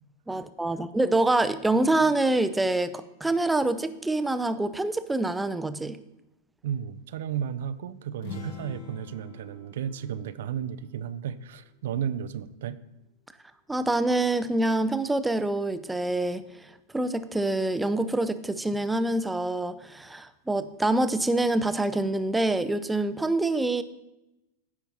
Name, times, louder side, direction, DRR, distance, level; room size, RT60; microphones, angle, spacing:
voice 1, 0.3-6.0 13.7-16.4 16.9-23.8, right 2 dB, 5° right, 12 dB, 0.5 m, -26 dB
voice 2, 6.6-12.8, right 8 dB, 55° right, 14 dB, 0.4 m, -33 dB
sound 1, 8.1-11.9, left 4 dB, 55° left, 1.3 m, -45 dB
15.0 x 5.6 x 3.0 m, 0.91 s
figure-of-eight pair, 90°, 0 cm